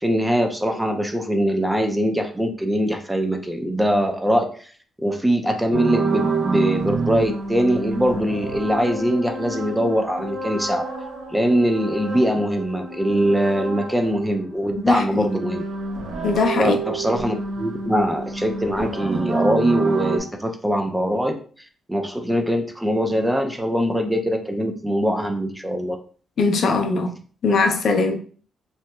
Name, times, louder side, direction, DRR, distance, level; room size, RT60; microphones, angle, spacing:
voice 1, 0.0-4.5 5.0-10.9 11.3-15.6 16.6-21.4 21.9-26.0, equal, 5° right, 0.4 m, -22 dB
sound 1, 5.7-14.3 14.6-20.2, right 3 dB, 90° right, 0.9 m, -28 dB
voice 2, 14.8-15.3 16.2-16.8 26.4-27.1 27.4-28.2, left 4 dB, 55° left, 0.4 m, -20 dB
3.0 x 2.8 x 2.2 m
cardioid pair, 145°, 0 cm